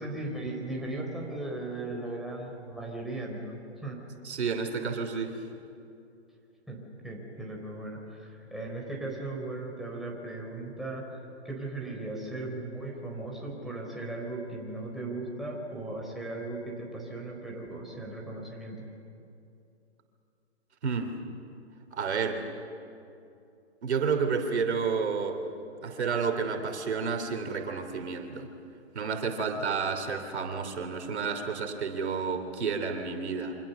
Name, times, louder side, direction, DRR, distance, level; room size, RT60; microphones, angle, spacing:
voice 1, 0.0-3.6 3.8-4.0 6.7-18.8, right 2 dB, ahead, -2 dB, 4.2 m, -37 dB
voice 2, 4.2-5.4 20.8-21.1 21.9-22.4 23.8-25.4 25.8-28.5 28.9-33.6, right 5 dB, 70° right, 5 dB, 3.1 m, -30 dB
27.5 x 25.0 x 6.9 m, 2.7 s
hypercardioid pair, 135°, 35 cm